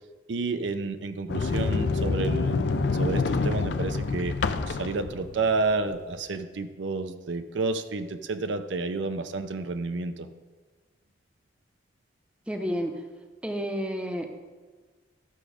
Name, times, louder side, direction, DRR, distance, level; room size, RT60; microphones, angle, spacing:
voice 1, 0.3-2.7 2.9-4.4 4.7-10.3, right 3 dB, 75° right, 9 dB, 0.6 m, -30 dB
Sliding door, 1.3-6.1, left 4 dB, 65° left, 0.5 m, -27 dB
voice 2, 12.5-12.9 13.4-14.4, equal, 5° right, 4 dB, 0.7 m, -30 dB
12.5 x 6.1 x 4.9 m, 1.4 s
head